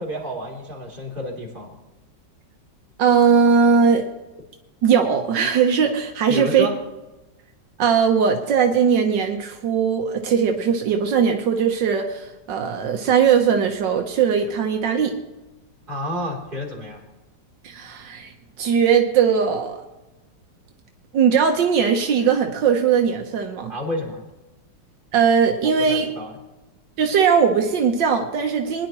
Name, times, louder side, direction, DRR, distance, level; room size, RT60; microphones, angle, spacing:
voice 1, 0.0-1.8 6.3-6.8 15.9-17.0 23.7-24.2 25.6-26.4, equal, 25° right, -3 dB, 3.5 m, -30 dB
voice 2, 3.0-4.1 4.8-6.7 7.8-15.2 17.6-19.8 21.1-23.7 25.1-26.1 27.0-28.9, right 6 dB, 80° right, 4 dB, 1.7 m, -19 dB
22.5 x 10.5 x 3.0 m, 1.0 s
omnidirectional pair, 1.9 m